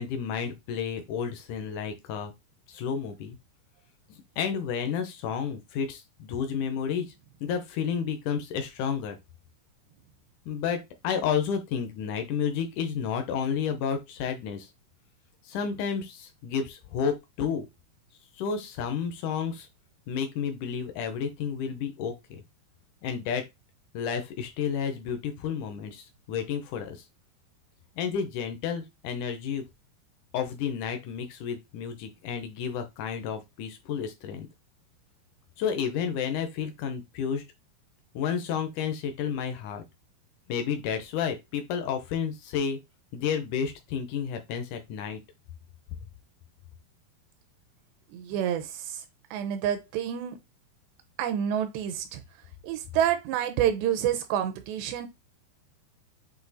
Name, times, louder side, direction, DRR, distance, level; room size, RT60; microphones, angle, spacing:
voice 1, 0.0-2.3 2.7-3.4 4.1-7.1 7.4-9.2 10.5-14.7 15.4-17.7 18.4-19.7 20.1-22.4 23.0-23.4 23.9-27.0 28.0-29.6 30.3-34.5 35.6-37.4 38.2-39.8 40.5-42.8 43.1-45.2, left 7 dB, 80° left, 1.8 m, -31 dB
voice 2, 48.1-49.0 49.3-50.4 51.2-52.2 52.6-55.1, right 10 dB, 85° right, 3.0 m, -28 dB
8.4 x 2.8 x 4.1 m
omnidirectional pair, 4.9 m